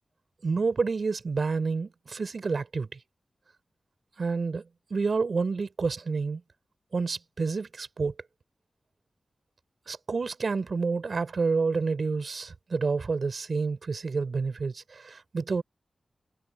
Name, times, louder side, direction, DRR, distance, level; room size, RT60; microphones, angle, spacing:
voice 1, 0.4-3.0 4.2-4.6 4.9-6.4 6.9-8.1 9.9-15.6, right 4 dB, 60° right, 4.3 m, -29 dB
wide cardioid pair, 90°, 0 cm